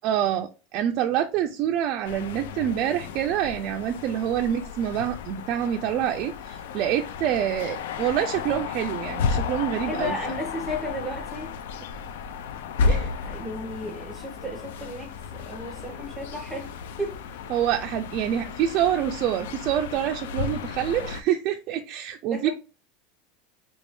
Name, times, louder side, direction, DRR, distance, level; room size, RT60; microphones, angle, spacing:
voice 1, 0.0-10.2 12.9-13.1 17.5-22.5, right 10 dB, 45° right, 0.3 m, -26 dB
sound 1, 2.0-21.2, left 5 dB, 85° left, 0.4 m, -33 dB
voice 2, 9.9-11.5 13.2-16.7 17.0-17.2 22.3-22.5, equal, 10° right, 0.6 m, -34 dB
3.3 x 2.6 x 3.3 m
supercardioid pair, 155°, 0 cm